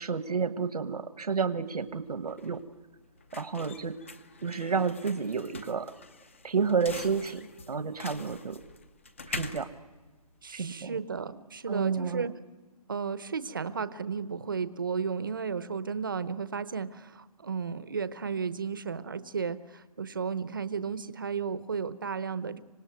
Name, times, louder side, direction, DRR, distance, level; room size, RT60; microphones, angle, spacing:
voice 1, 0.0-2.6 3.3-3.9 4.4-5.9 6.4-8.6 9.3-9.7 10.5-11.0 11.7-12.3, right 5 dB, 80° right, 10 dB, 1.3 m, -30 dB
sound 1, 1.8-10.9, left 3 dB, 20° left, 0.7 m, -44 dB
voice 2, 10.4-12.3 12.9-22.6, right 5 dB, 35° right, 14 dB, 0.8 m, -34 dB
26.0 x 18.5 x 9.3 m, 1.3 s
hypercardioid pair, 180°, 19 cm